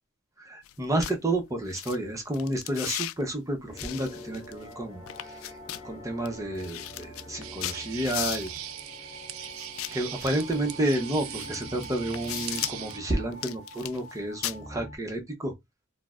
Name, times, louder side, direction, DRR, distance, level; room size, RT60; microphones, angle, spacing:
voice 1, 0.4-5.5 5.8-8.5 9.9-15.5, right 1 dB, 15° right, 0.7 m, -30 dB
sound 1, 0.6-0.7 1.0-1.1 1.7-2.0 2.3-3.1 3.8-4.7 5.1-5.8 6.3-6.4 6.6-8.6 9.6-10.6 11.3-11.5 11.8-12.9 13.3-14.1 14.4-14.6, left 14 dB, 70° left, 0.3 m, -36 dB
sound 2, 3.7-15.0, equal, 40° left, 1.6 m, -45 dB
sound 3, 7.4-13.0, right 12 dB, 75° right, 0.4 m, -40 dB
4.5 x 2.0 x 2.4 m
head